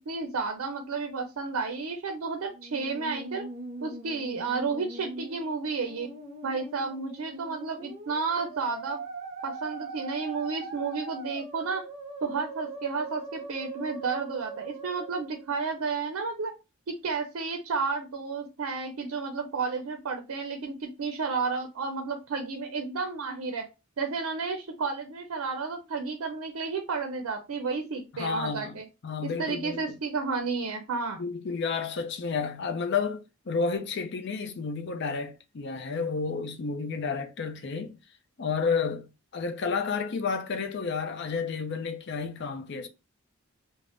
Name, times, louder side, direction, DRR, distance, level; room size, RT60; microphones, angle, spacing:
voice 1, 0.0-3.5 3.8-6.1 6.4-9.0 9.4-11.8 12.2-16.5 16.9-23.7 24.0-28.8 29.2-31.2, right 4 dB, 80° right, 0.5 m, -32 dB
Musical instrument, 2.5-15.5, right 3 dB, 40° right, 0.9 m, -41 dB
voice 2, 28.1-29.8 31.2-38.0 38.4-42.9, left 5 dB, 55° left, 0.5 m, -31 dB
3.4 x 2.1 x 2.5 m
head